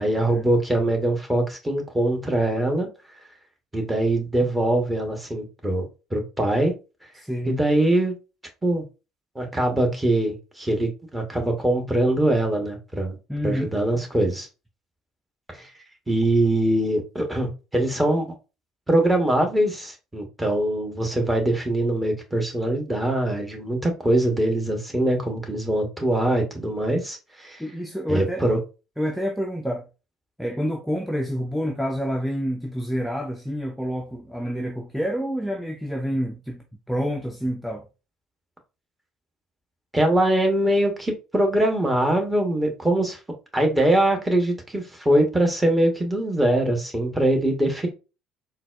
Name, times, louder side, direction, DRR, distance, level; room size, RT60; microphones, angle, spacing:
voice 1, 0.0-2.9 3.7-5.8 6.1-6.7 7.5-8.1 8.6-8.8 9.3-13.2 13.4-14.5 15.5-15.7 16.1-18.3 18.9-27.6 28.1-28.6 39.9-43.2 43.5-47.9, right 1 dB, 15° right, 1.0 m, -22 dB
voice 2, 7.1-7.6 13.3-13.7 27.6-28.4 29.0-29.8 30.4-37.9, equal, ahead, 0.4 m, -28 dB
3.9 x 2.2 x 2.3 m
figure-of-eight pair, 60°, 0 cm